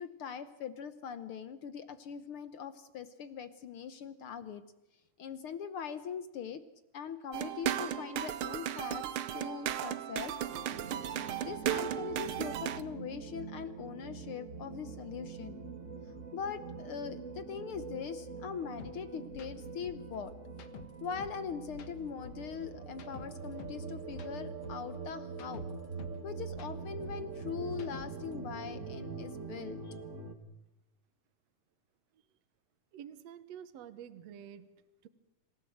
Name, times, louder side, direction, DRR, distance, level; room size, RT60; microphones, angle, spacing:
voice 1, 0.0-4.6 5.2-6.6 6.9-10.3 11.4-15.6 16.0-20.3 21.0-25.7 26.2-30.0, left 7 dB, 70° left, 13 dB, 1.3 m, -41 dB
sound 1, 7.3-12.8, right 10 dB, 85° right, 1.1 m, -35 dB
sound 2, 10.5-30.3, right 4 dB, 30° right, 1.5 m, -44 dB
sound 3, 18.8-18.9 19.3-19.5 19.8-21.4 21.7-23.8 24.1-26.2 26.5-28.3, left 6 dB, 55° left, 2.3 m, -51 dB
voice 2, 32.9-34.7 35.0-35.1, right 9 dB, 60° right, 12 dB, 2.2 m, -48 dB
26.5 x 17.0 x 7.9 m, 0.97 s
omnidirectional pair, 3.7 m